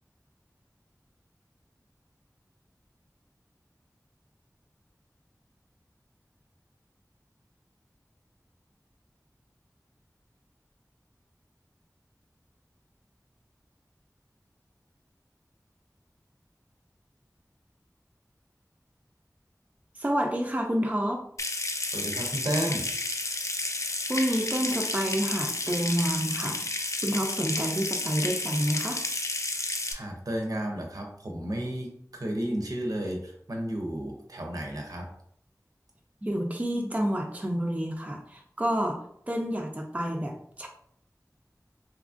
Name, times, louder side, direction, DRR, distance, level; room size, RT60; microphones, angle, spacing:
voice 1, 20.0-21.3 24.1-29.0 36.2-39.0 39.3-40.7, equal, 20° right, 2 dB, 0.4 m, -29 dB
Water tap faucet / Sink (filling or washing) / Trickle dribble, 21.4-29.9, left 2 dB, 55° left, 0.3 m, -31 dB
voice 2, 21.8-22.9 29.9-35.1, right 1 dB, 70° right, 1 dB, 0.6 m, -32 dB
2.9 x 2.4 x 2.4 m, 0.67 s
wide cardioid pair, 45°, 6 cm